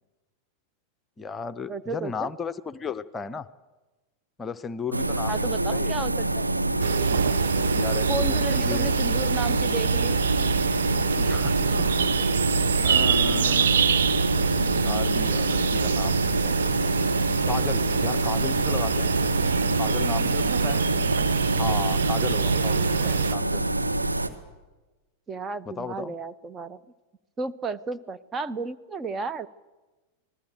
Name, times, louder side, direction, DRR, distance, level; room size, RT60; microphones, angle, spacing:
voice 1, 1.2-3.5 4.4-5.9 7.7-8.9 11.1-11.9 12.8-13.9 14.4-16.7 17.5-19.2 19.8-20.8 21.5-23.6 25.7-26.1, left 5 dB, 20° left, 14 dB, 0.8 m, -35 dB
voice 2, 1.7-2.3 5.3-6.4 8.1-10.2 22.9-23.2 25.3-26.8 27.4-29.5, right 3 dB, 20° right, 12 dB, 0.8 m, -33 dB
sound 1, 4.9-24.3, right 1 dB, 85° right, 1.4 m, -26 dB
sound 2, 6.8-23.3, right 7 dB, 65° right, 1.0 m, -26 dB
26.0 x 19.5 x 7.6 m, 1.2 s
figure-of-eight pair, 90°, 0 cm